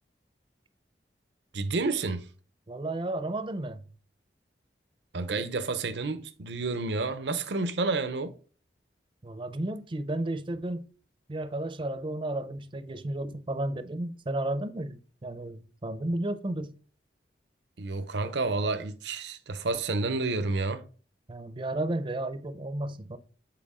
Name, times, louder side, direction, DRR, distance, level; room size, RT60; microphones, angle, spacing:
voice 1, 1.5-2.3 5.1-8.3 17.8-20.8, right 3 dB, 80° right, 0.7 m, -30 dB
voice 2, 2.7-3.8 9.2-10.9 11.3-16.7 21.3-23.2, right 1 dB, 30° right, 0.5 m, -33 dB
7.7 x 4.4 x 3.6 m
head